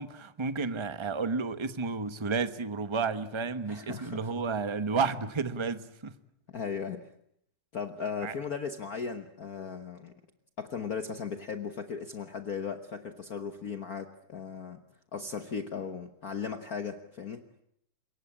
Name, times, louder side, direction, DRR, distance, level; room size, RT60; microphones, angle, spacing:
voice 1, 0.0-6.1 8.2-8.3, right 4 dB, 40° right, 0.4 m, -31 dB
voice 2, 3.7-4.3 6.5-7.1 7.7-10.1 10.6-14.8 15.1-17.4, left 6 dB, 45° left, 1.5 m, -37 dB
27.5 x 22.5 x 8.7 m
omnidirectional pair, 2.4 m